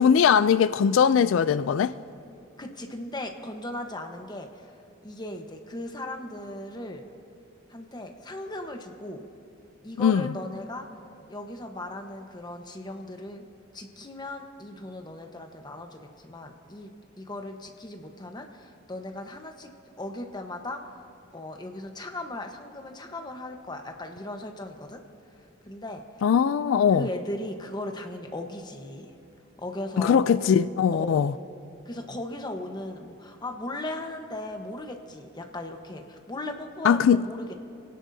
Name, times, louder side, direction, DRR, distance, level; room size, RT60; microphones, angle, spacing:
voice 1, 0.0-1.9 10.0-10.3 26.2-27.1 30.0-31.3 36.8-37.2, left 7 dB, 85° left, 0.3 m, -20 dB
voice 2, 2.6-4.5 5.0-7.0 7.7-9.2 9.8-10.9 11.3-13.4 13.7-16.9 17.2-19.7 20.0-20.8 21.3-25.0 25.7-26.0 26.9-29.1 29.6-30.3 31.0-31.3 31.9-37.6, left 1 dB, 20° left, 1.1 m, -37 dB
28.0 x 17.0 x 2.7 m
head